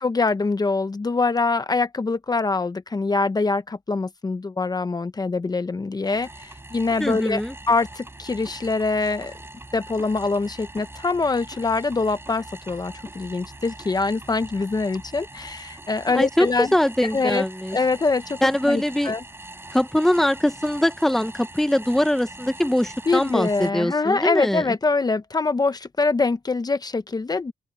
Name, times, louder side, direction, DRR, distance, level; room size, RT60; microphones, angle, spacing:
voice 1, 0.0-7.4 7.7-9.3 9.7-16.7 17.1-17.4 17.7-18.4 18.6-19.2 23.1-27.5, left 3 dB, 30° left, 0.9 m, -24 dB
sound 1, 6.0-23.7, right 2 dB, 15° right, 4.5 m, -42 dB
voice 2, 7.0-7.5 16.1-17.8 18.4-19.1 19.7-24.6, left 1 dB, ahead, 0.9 m, -22 dB
open air
cardioid pair, 100°, 14 cm